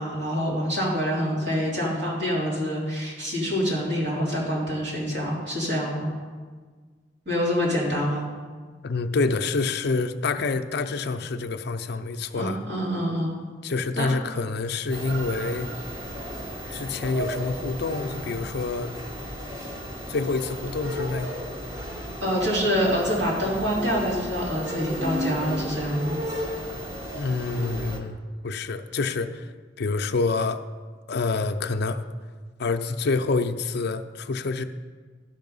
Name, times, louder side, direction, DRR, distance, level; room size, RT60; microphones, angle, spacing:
voice 1, 0.0-6.1 7.2-8.2 12.3-13.4 14.0-14.1 22.2-26.2, equal, 70° right, -5 dB, 3.0 m, -26 dB
voice 2, 8.8-12.6 13.6-15.7 16.7-18.9 20.1-21.3 27.2-28.2 28.4-29.5 29.8-30.6 31.1-32.0 32.6-34.6, left 3 dB, 60° left, 8 dB, 0.5 m, -27 dB
sound 1, 14.9-28.0, equal, 20° right, 1.1 m, -34 dB
12.0 x 5.4 x 5.4 m, 1.5 s
head